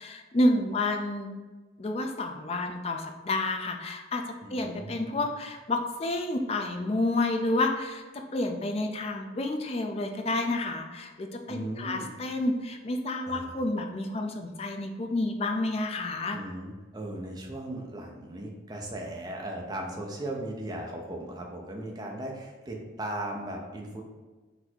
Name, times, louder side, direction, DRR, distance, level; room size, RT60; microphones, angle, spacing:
voice 1, 0.0-1.3 1.8-16.4, left 2 dB, 30° left, 4 dB, 0.4 m, -30 dB
voice 2, 4.4-5.2 11.5-12.1 13.3-13.6 16.3-24.0, right 1 dB, 20° right, 0 dB, 0.6 m, -37 dB
4.0 x 2.6 x 4.5 m, 1.3 s
head